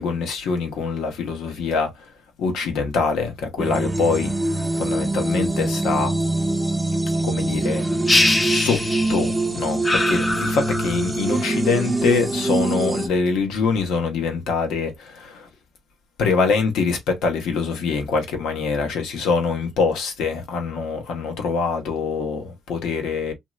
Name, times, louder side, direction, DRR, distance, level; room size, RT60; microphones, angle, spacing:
voice 1, 0.0-2.1 2.4-6.1 7.2-7.9 8.4-8.8 9.1-15.5 16.2-23.3, left 4 dB, 85° left, 1.0 m, -24 dB
sound 1, 3.6-13.1, right 2 dB, 10° right, 0.7 m, -24 dB
sound 2, 8.1-9.4 9.8-11.1, left 2 dB, 20° left, 0.6 m, -22 dB
3.0 x 2.7 x 2.3 m
cardioid pair, 90°, 0 cm